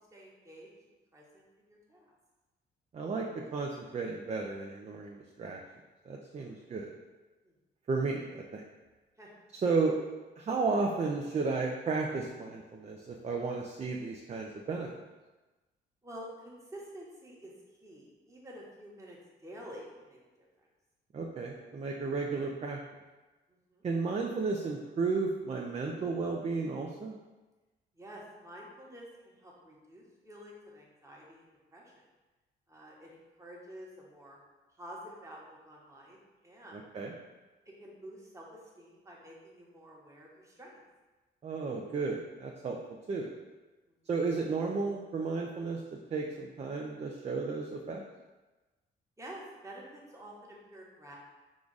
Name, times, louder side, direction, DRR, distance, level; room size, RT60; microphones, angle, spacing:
voice 1, 0.1-1.4 1.7-2.1 6.4-6.7 7.4-7.5 9.2-9.3 16.0-17.5 17.8-20.5 23.5-23.8 28.0-31.9 32.7-34.4 34.8-36.2 36.4-36.9 37.8-40.8 43.9-44.0 49.2-51.2, equal, 15° right, -3 dB, 1.1 m, -49 dB
voice 2, 2.9-5.6 6.1-6.9 7.9-8.6 9.5-10.0 10.4-14.9 21.1-22.8 23.8-27.2 36.7-37.1 41.4-42.8 43.1-43.3 44.1-45.8 46.1-48.0, right 4 dB, 35° right, 0 dB, 0.5 m, -33 dB
4.9 x 2.3 x 3.9 m, 1.2 s
cardioid pair, 90°, 20 cm